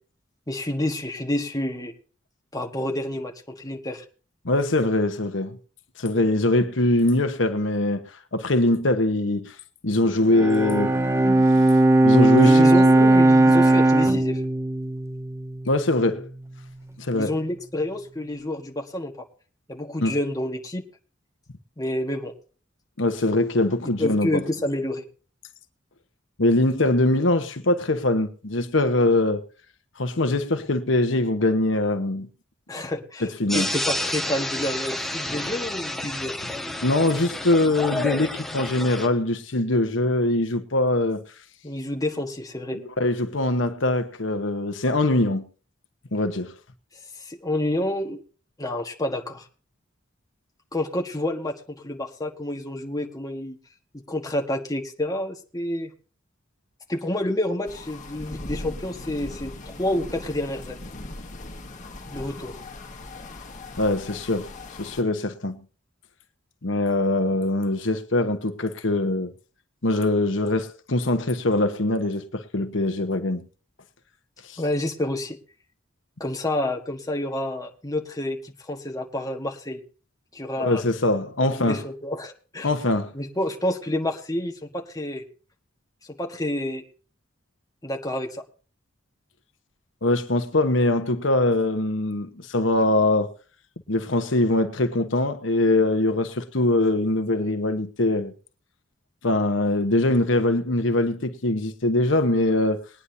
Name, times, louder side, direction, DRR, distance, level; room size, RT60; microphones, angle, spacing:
voice 1, 0.5-1.9 2.5-4.0 12.3-14.4 17.1-19.2 19.7-20.8 21.8-22.3 24.0-25.0 32.7-33.3 33.5-36.3 41.6-42.8 47.2-48.2 48.6-49.5 50.7-53.6 53.9-55.9 56.9-60.8 62.1-62.6 74.6-75.4 76.2-79.8 80.3-80.8 81.4-82.7 83.1-85.2 86.2-86.8 87.8-88.4, left 1 dB, 20° left, 1.4 m, -29 dB
voice 2, 4.4-5.6 6.0-9.6 9.8-11.0 12.0-13.1 15.7-16.3 17.0-17.3 20.0-20.1 23.0-24.4 26.4-29.4 30.0-32.3 33.2-33.7 36.8-41.2 43.0-45.4 46.1-46.6 63.8-64.5 64.8-65.6 66.6-69.3 69.8-73.4 74.5-74.6 80.6-81.8 82.6-83.1 90.0-93.3 93.9-98.3 99.2-102.9, left 2 dB, 70° left, 1.1 m, -22 dB
Bowed string instrument, 10.3-15.8, right 2 dB, 15° right, 0.6 m, -18 dB
sound 1, 33.5-39.1, left 1 dB, ahead, 1.5 m, -30 dB
sound 2, 57.7-65.0, left 2 dB, 40° left, 1.7 m, -39 dB
21.0 x 9.9 x 2.7 m
head